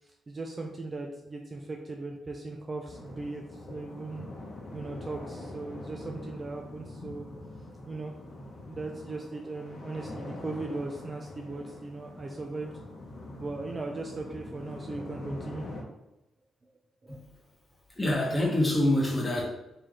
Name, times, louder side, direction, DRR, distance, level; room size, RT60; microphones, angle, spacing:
voice 1, 0.0-4.3 4.7-7.3 7.8-8.1 8.7-12.7 13.4-15.7 17.0-17.2, right 3 dB, 25° right, 0.4 m, -38 dB
sound 1, 2.9-15.8, left 2 dB, 50° left, 0.9 m, -44 dB
voice 2, 17.9-19.4, left 1 dB, 15° left, 1.0 m, -25 dB
3.2 x 2.9 x 3.7 m
cardioid pair, 125°, 0 cm